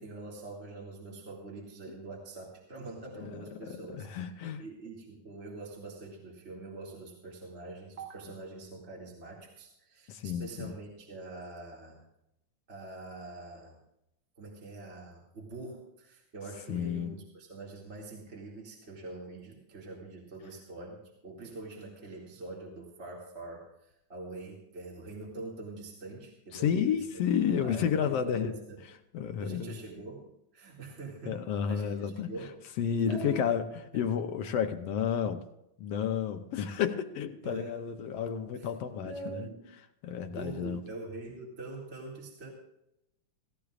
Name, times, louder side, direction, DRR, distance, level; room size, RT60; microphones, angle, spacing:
voice 1, 0.0-12.1 12.7-13.8 14.4-28.8 29.4-30.3 30.5-31.4 31.7-32.6 32.9-33.5 37.4-37.8 38.6-38.7 38.9-39.7 40.3-42.5, right 3 dB, 25° right, -2 dB, 2.1 m, -44 dB
voice 2, 3.2-4.6 10.1-10.7 16.7-17.1 26.5-28.5 29.1-29.8 31.3-32.3 32.8-33.7 33.9-35.5 35.8-39.5 40.0-40.8, left 8 dB, 70° left, 6 dB, 1.6 m, -31 dB
17.0 x 16.5 x 2.5 m, 0.83 s
omnidirectional pair, 3.5 m